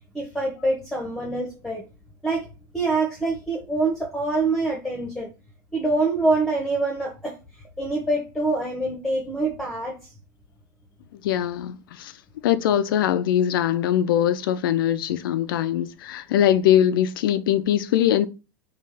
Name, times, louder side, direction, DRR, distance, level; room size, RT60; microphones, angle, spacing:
voice 1, 0.1-1.9 2.2-5.3 5.7-7.4 7.8-10.1, right 2 dB, 5° left, 1.0 m, -25 dB
voice 2, 11.2-12.1 12.4-18.3, left 11 dB, 75° left, 0.4 m, -22 dB
3.3 x 2.4 x 3.4 m
hypercardioid pair, 95°, 12 cm